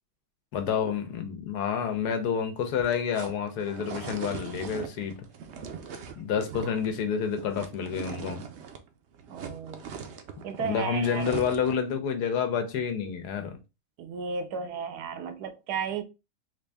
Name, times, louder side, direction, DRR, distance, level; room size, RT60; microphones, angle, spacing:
voice 1, 0.5-5.3 6.2-8.4 10.6-13.6, left 7 dB, 85° left, 1.3 m, -29 dB
sound 1, 2.6-8.9 9.1-11.9, right 7 dB, 60° right, 0.7 m, -41 dB
voice 2, 9.3-9.8 10.4-11.3 14.0-16.0, right 6 dB, 80° right, 1.2 m, -34 dB
3.7 x 2.6 x 3.3 m
omnidirectional pair, 1.7 m